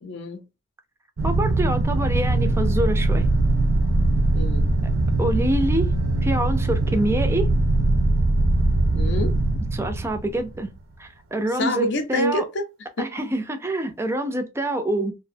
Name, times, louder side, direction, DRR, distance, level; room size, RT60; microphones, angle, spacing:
voice 1, 0.0-0.4 4.3-4.7 8.9-9.4 11.5-12.7 13.0-13.1, left 1 dB, 60° left, 0.5 m, -27 dB
voice 2, 1.2-3.3 5.2-5.9 6.2-7.5 9.7-10.7 11.0-12.4 13.0-15.2, right 1 dB, 15° right, 0.4 m, -26 dB
sound 1, 1.2-10.8, right 2 dB, 80° right, 0.5 m, -21 dB
2.6 x 2.1 x 2.5 m
head